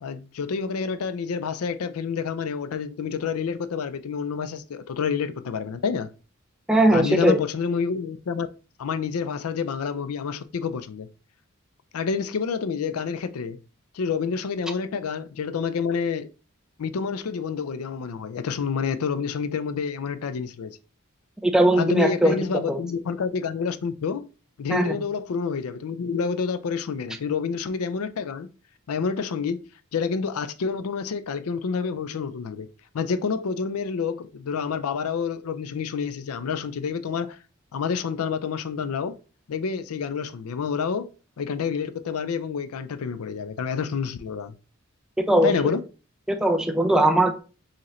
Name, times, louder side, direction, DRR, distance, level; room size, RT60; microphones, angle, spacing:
voice 1, 0.0-6.1 6.9-8.5 8.8-11.1 11.9-13.6 13.9-16.3 16.8-20.8 21.8-24.2 24.6-28.5 28.9-29.6 29.9-32.7 32.9-37.4 37.7-39.2 39.5-41.1 41.4-44.6 45.4-45.8, left 5 dB, 90° left, 0.4 m, -28 dB
voice 2, 6.7-7.4 21.4-22.4 22.7-22.8 24.7-25.0 45.2-45.7 46.3-47.4, right 1 dB, 5° right, 0.5 m, -20 dB
4.7 x 3.0 x 3.1 m
head